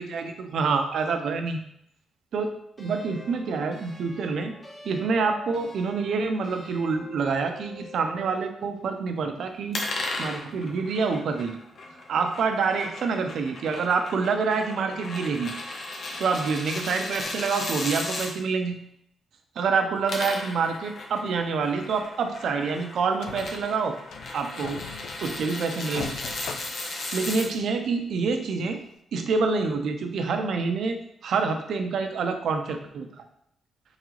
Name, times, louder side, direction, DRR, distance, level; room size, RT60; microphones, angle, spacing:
voice 1, 0.0-1.6 2.3-4.5 4.8-9.8 10.2-11.6 12.1-15.5 16.2-18.8 19.6-24.0 24.3-24.8 25.2-26.2 27.1-28.8 29.1-31.0 31.2-33.2, right 4 dB, 75° right, 5 dB, 0.6 m, -27 dB
sound 1, 2.8-8.5, left 2 dB, 25° left, 1.4 m, -46 dB
sound 2, 9.7-18.3 19.8-27.5, left 2 dB, 60° left, 0.9 m, -36 dB
sound 3, 21.8-22.0 22.4-22.5 22.8-22.9 23.2-23.7 24.1-25.6 25.9-27.5 28.0-28.1 28.7-28.8, left 6 dB, 75° left, 0.3 m, -40 dB
3.9 x 3.7 x 3.1 m, 0.72 s
cardioid pair, 90°, 0 cm